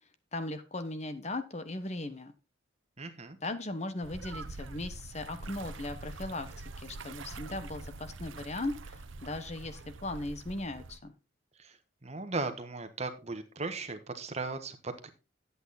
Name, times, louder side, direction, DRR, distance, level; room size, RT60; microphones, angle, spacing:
voice 1, 0.3-2.3 3.4-11.1, left 2 dB, 35° left, 10 dB, 1.1 m, -38 dB
voice 2, 3.0-3.4 11.6-15.1, right 3 dB, 35° right, 8 dB, 1.2 m, -37 dB
sound 1, 4.0-11.0, right 3 dB, 90° right, 0.9 m, -45 dB
10.5 x 8.3 x 4.1 m, 0.29 s
head